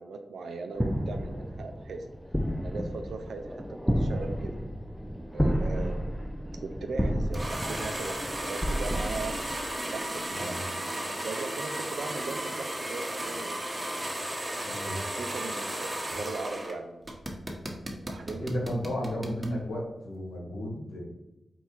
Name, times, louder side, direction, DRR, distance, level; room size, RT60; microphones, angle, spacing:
voice 1, 0.0-2.1 2.6-4.6 5.3-6.2 6.6-9.3 9.9-13.7 14.8-17.2 17.9-18.4, right 4 dB, 85° right, 5 dB, 0.4 m, -39 dB
sound 1, 0.8-10.1, equal, ahead, 0.4 m, -31 dB
sound 2, 4.8-15.4, left 1 dB, 50° left, 0.7 m, -49 dB
sound 3, 7.3-16.7 17.0-19.5, right 1 dB, 25° right, 1.0 m, -35 dB
voice 2, 10.3-10.7 14.7-15.0 18.4-21.0, equal, 85° left, -3 dB, 1.3 m, -33 dB
4.5 x 2.3 x 4.3 m, 1.0 s
cardioid pair, 40°, 0 cm